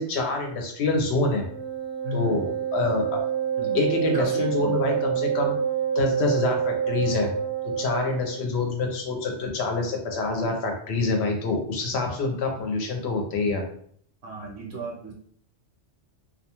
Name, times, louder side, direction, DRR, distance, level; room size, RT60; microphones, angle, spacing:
voice 1, 0.0-1.4 2.1-3.2 3.7-5.6 6.0-7.3 7.8-13.6, left 3 dB, 65° left, 2 dB, 0.9 m, -26 dB
Wind instrument woodwind instrument, 1.4-8.4, right 8 dB, 30° right, 0.5 m, -27 dB
voice 2, 2.0-2.4 3.6-3.8 4.1-4.4 14.2-15.1, equal, 65° right, -2 dB, 0.9 m, -33 dB
2.4 x 2.2 x 2.8 m, 0.62 s
omnidirectional pair, 1.2 m